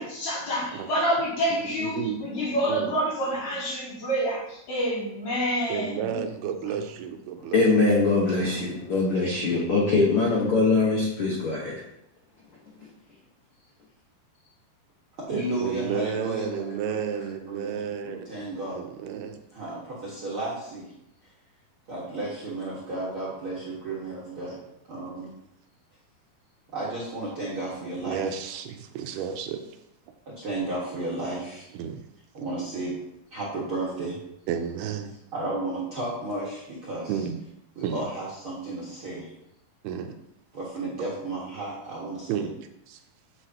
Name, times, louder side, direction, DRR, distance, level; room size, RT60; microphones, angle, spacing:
voice 1, 0.0-6.2 7.4-7.5, equal, 45° left, -8 dB, 4.2 m, -28 dB
voice 2, 1.5-2.3 2.7-3.0 5.7-7.6 15.6-18.3 18.7-19.4 28.1-29.7 31.7-32.0 34.5-35.2 37.1-37.4 37.8-38.1 39.8-40.2 42.3-43.0, right 8 dB, 80° right, 6 dB, 2.5 m, -32 dB
voice 3, 7.5-11.8, left 3 dB, 70° left, -4 dB, 1.3 m, -22 dB
voice 4, 15.2-18.8 19.5-20.9 21.9-24.6 24.9-25.3 26.7-28.4 30.2-31.6 32.3-33.0 33.3-34.2 35.3-37.2 37.7-39.3 40.5-42.4, right 2 dB, 50° right, -6 dB, 1.7 m, -33 dB
8.3 x 8.0 x 2.9 m, 0.80 s
omnidirectional pair, 4.6 m